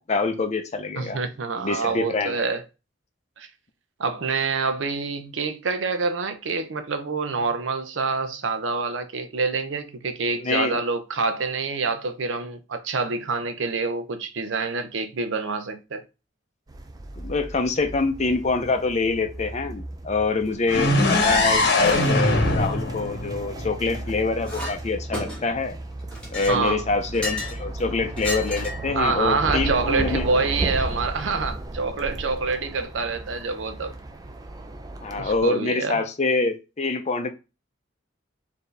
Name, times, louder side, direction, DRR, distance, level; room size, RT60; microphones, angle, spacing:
voice 1, 0.0-1.2 1.6-2.4 10.4-10.8 17.2-25.8 26.3-30.2 35.0-37.3, left 3 dB, 35° left, 0.5 m, -25 dB
voice 2, 1.0-2.6 3.4-3.5 4.0-16.0 26.5-26.8 28.9-33.9 35.2-36.0, right 4 dB, 80° right, 0.6 m, -26 dB
sound 1, 16.7-35.4, right 2 dB, 20° right, 0.4 m, -35 dB
sound 2, 20.7-24.5, left 2 dB, 60° left, 0.9 m, -22 dB
Chink clink, 24.5-24.8 25.1-25.6 26.1-27.6 28.2-28.9, left 1 dB, 5° left, 1.3 m, -32 dB
4.4 x 2.7 x 3.3 m
head